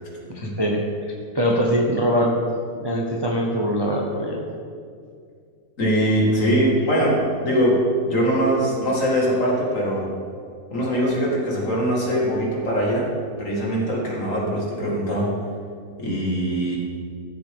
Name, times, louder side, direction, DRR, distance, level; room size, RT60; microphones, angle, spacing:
voice 1, 0.3-2.4 2.7-4.4, equal, 20° right, -1 dB, 0.7 m, -23 dB
voice 2, 5.8-10.1 10.7-13.1 13.4-15.3 16.0-16.8, equal, 55° left, -4 dB, 2.5 m, -22 dB
13.5 x 8.1 x 3.8 m, 2.3 s
omnidirectional pair, 1.6 m